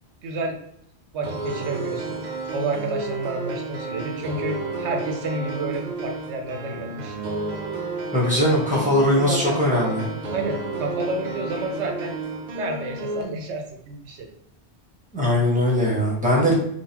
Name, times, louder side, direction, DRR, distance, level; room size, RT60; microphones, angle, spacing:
voice 1, 0.2-0.6 1.1-2.2 2.5-7.2 8.1-8.2 9.2-9.6 10.3-12.1 12.5-14.3, right 2 dB, 85° right, 3 dB, 0.9 m, -30 dB
sound 1, 1.2-13.2, right 3 dB, 55° right, 0.5 m, -31 dB
voice 2, 8.1-10.1 15.1-16.5, left 1 dB, 5° right, -4 dB, 1.1 m, -20 dB
3.8 x 2.4 x 2.8 m, 0.73 s
omnidirectional pair, 1.1 m